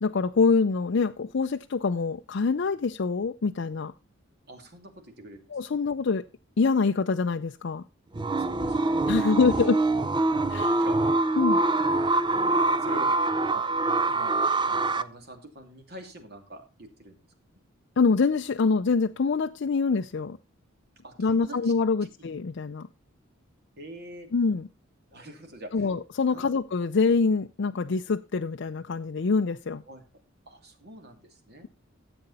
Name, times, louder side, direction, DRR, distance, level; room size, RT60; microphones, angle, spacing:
voice 1, 0.0-3.9 5.5-6.2 6.6-7.8 9.1-9.8 10.5-10.8 11.4-11.6 18.0-20.4 21.2-22.9 24.3-24.7 25.7-29.8, left 4 dB, 60° left, 0.5 m, -25 dB
voice 2, 4.5-5.4 5.7-5.8 8.3-9.4 10.8-11.0 11.4-12.0 12.3-13.1 13.5-13.6 14.1-17.2 17.5-17.6 21.0-21.7 22.0-22.1 23.8-24.3 25.1-25.9 26.3-26.5 29.9-30.0 30.5-31.7, right 1 dB, 55° right, 2.7 m, -45 dB
sound 1, 8.1-15.0, right 2 dB, 25° right, 0.6 m, -24 dB
14.5 x 7.9 x 4.1 m
head